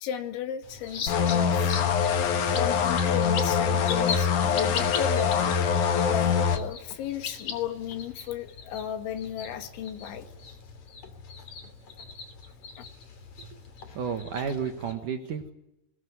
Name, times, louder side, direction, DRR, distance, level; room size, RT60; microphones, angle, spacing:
voice 1, 0.0-1.7 2.5-5.6 6.1-10.3 12.8-12.9, left 9 dB, 75° left, 8 dB, 4.2 m, -35 dB
sound 1, 0.6-14.9, left 6 dB, 40° left, 3.5 m, -40 dB
sound 2, 1.1-6.6, left 7 dB, 60° left, 2.3 m, -24 dB
voice 2, 13.9-15.5, right 6 dB, 60° right, 6 dB, 2.2 m, -32 dB
21.5 x 21.0 x 9.6 m, 0.85 s
omnidirectional pair, 5.6 m